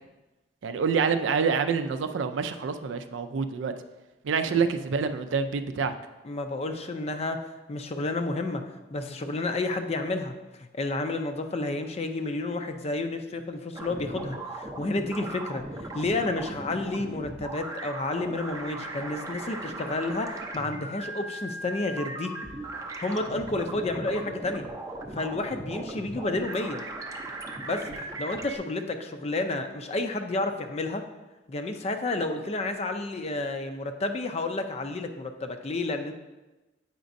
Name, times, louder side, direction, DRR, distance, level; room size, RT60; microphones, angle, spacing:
voice 1, 0.6-3.7 4.2-5.9, right 5 dB, 85° right, 9 dB, 0.4 m, -27 dB
voice 2, 6.2-7.4 7.7-8.6 8.9-22.4 23.0-24.7 25.1-26.8 27.6-31.0 31.5-36.1, left 2 dB, 35° left, 7 dB, 0.5 m, -31 dB
sound 1, 13.7-28.6, right 2 dB, 20° right, 0.5 m, -38 dB
8.0 x 5.1 x 2.6 m, 1.1 s
head